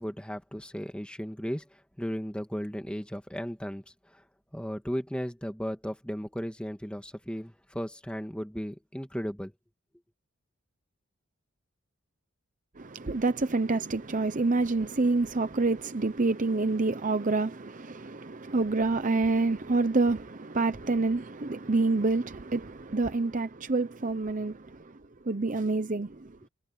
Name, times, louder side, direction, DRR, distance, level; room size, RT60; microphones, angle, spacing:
voice 1, 0.0-3.8 4.1-4.2 4.5-9.5, equal, 5° left, 2.1 m, -35 dB
voice 2, 12.8-25.0 25.2-26.3, right 3 dB, 35° right, 0.8 m, -27 dB
head